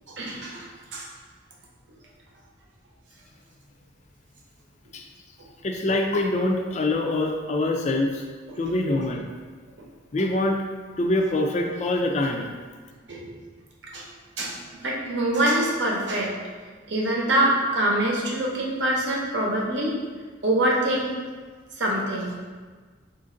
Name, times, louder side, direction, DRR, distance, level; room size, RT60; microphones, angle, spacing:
voice 1, 0.1-1.1 8.5-8.6 13.1-13.3 13.9-14.0 14.4-14.5 14.8-16.3 16.9-19.9 20.4-21.1 21.8-22.4, right 1 dB, 65° right, -3 dB, 0.8 m, -24 dB
voice 2, 5.6-8.2 8.6-9.2 10.1-10.6 11.0-12.5, left 2 dB, 35° left, 2 dB, 0.3 m, -24 dB
4.2 x 2.6 x 3.7 m, 1.5 s
head